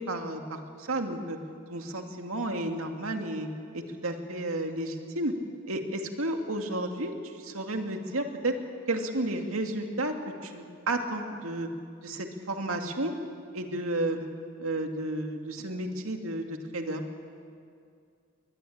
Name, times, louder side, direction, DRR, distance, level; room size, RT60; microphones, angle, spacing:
voice 1, 0.0-1.4 1.7-3.5 3.7-5.4 5.7-8.6 8.9-10.1 10.4-11.7 12.0-13.2 13.5-14.3 14.6-17.0, right 1 dB, 85° right, 4 dB, 2.3 m, -32 dB
22.5 x 20.0 x 8.7 m, 2.3 s
head